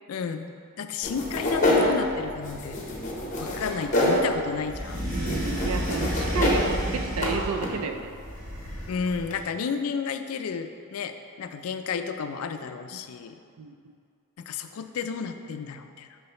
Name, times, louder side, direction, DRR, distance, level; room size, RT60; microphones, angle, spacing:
voice 1, 0.1-2.8 3.4-5.1 8.9-13.4 14.4-16.2, left 6 dB, 75° left, 9 dB, 0.4 m, -32 dB
sound 1, 1.0-9.4, left 1 dB, 35° left, 0.9 m, -28 dB
sound 2, 4.7-7.7 8.2-9.2, equal, 40° right, 1.2 m, -31 dB
voice 2, 5.1-8.1 12.9-13.0 13.6-13.9, right 5 dB, 75° right, 7 dB, 0.4 m, -32 dB
6.3 x 5.5 x 3.0 m, 2.3 s
head